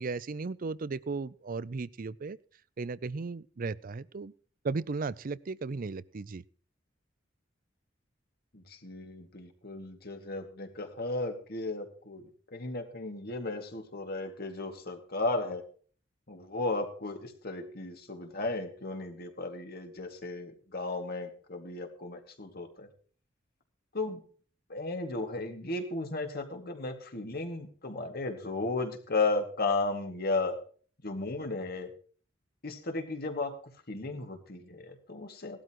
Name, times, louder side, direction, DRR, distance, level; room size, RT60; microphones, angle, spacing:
voice 1, 0.0-2.4 2.8-4.3 4.6-6.4, right 4 dB, 45° right, 19 dB, 0.5 m, -35 dB
voice 2, 8.5-15.6 16.3-22.9 23.9-24.2 24.7-30.6 31.0-31.9 32.6-33.6 33.9-35.6, left 3 dB, 55° left, 5 dB, 2.2 m, -35 dB
18.0 x 12.5 x 3.0 m, 0.43 s
head